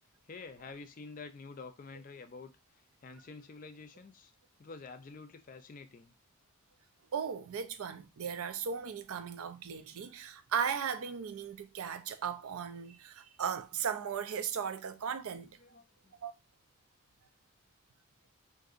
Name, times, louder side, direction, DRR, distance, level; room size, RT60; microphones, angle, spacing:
voice 1, 0.3-2.5 3.0-4.3 4.6-6.1 15.6-16.1, left 4 dB, 40° left, 0.4 m, -48 dB
voice 2, 7.1-15.6 16.2-16.3, right 7 dB, 80° right, 0.4 m, -37 dB
3.7 x 2.6 x 2.4 m
head